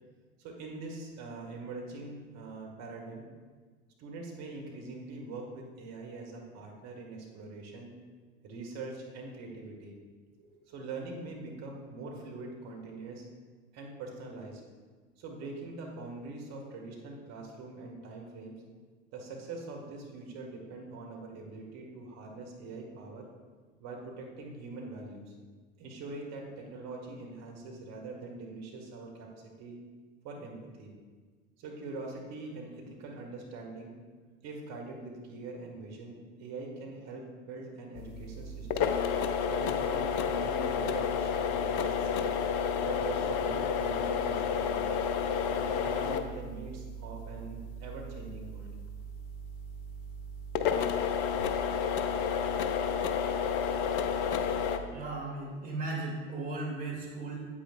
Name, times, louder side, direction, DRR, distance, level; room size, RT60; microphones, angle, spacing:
voice 1, 0.4-3.3 4.0-7.9 8.4-9.9 10.4-13.3 13.7-14.6 15.2-18.6 19.1-23.3 23.8-25.3 25.8-29.8 30.2-30.9 31.6-34.0 34.4-39.0 39.5-42.4 42.8-44.9 45.5-48.7, right 3 dB, 45° right, 0 dB, 1.8 m, -43 dB
sound 1, 38.0-54.8, left 6 dB, 45° left, 0.6 m, -31 dB
voice 2, 54.9-57.5, right 2 dB, 25° right, -3 dB, 2.3 m, -36 dB
8.8 x 8.1 x 2.5 m, 1.4 s
figure-of-eight pair, 80°, 36 cm